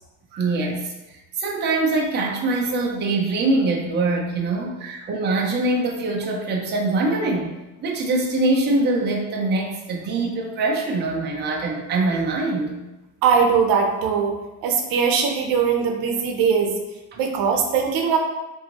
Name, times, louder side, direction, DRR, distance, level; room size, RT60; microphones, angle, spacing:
voice 1, 0.4-0.9 1.4-7.5 7.8-12.8, right 2 dB, 30° right, -1 dB, 0.6 m, -23 dB
voice 2, 13.2-14.3 14.6-16.7 17.2-18.2, right 6 dB, 80° right, 3 dB, 0.8 m, -20 dB
5.4 x 2.7 x 2.9 m, 1.0 s
cardioid pair, 160°, 34 cm